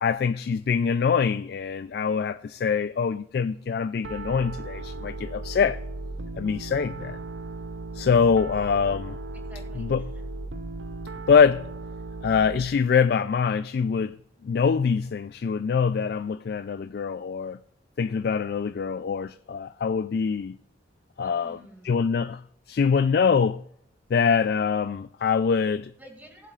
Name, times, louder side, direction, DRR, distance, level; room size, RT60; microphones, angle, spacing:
voice 1, 0.0-5.8 6.4-7.2 7.9-9.2 9.8-10.0 11.3-11.7 12.2-14.2 14.4-17.6 18.0-20.6 21.2-21.6 21.8-22.4 22.7-23.6 24.1-25.9, left 6 dB, 55° left, 0.3 m, -24 dB
Piano, 4.0-12.7, right 3 dB, 65° right, 0.5 m, -36 dB
voice 2, 9.3-10.2 21.2-22.0 26.0-26.5, right 1 dB, 10° right, 2.2 m, -50 dB
19.0 x 7.4 x 2.4 m
head